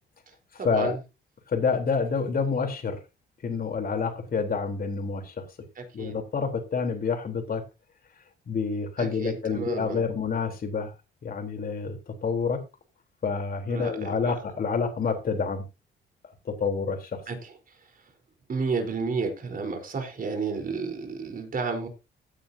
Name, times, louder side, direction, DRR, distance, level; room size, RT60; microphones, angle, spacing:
voice 1, 0.3-1.0 5.8-6.2 9.0-10.0 13.7-14.3 17.3-17.5 18.5-21.9, right 4 dB, 45° right, 4 dB, 4.4 m, -32 dB
voice 2, 1.5-3.0 3.4-5.4 5.9-7.6 8.5-10.9 11.2-12.6 13.2-15.6 16.5-17.2, left 5 dB, 45° left, 5 dB, 3.9 m, -28 dB
16.5 x 8.9 x 2.9 m, 0.27 s
cardioid pair, 90°, 20 cm